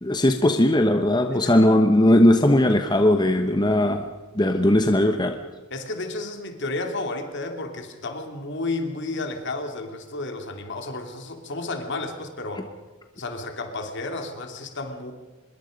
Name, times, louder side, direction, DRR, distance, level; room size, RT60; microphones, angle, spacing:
voice 1, 0.0-4.1 4.3-5.4, left 1 dB, 20° left, 6 dB, 1.0 m, -18 dB
voice 2, 5.7-12.7 13.2-15.1, left 2 dB, 55° left, 5 dB, 2.9 m, -32 dB
25.0 x 22.0 x 5.3 m, 1.3 s
head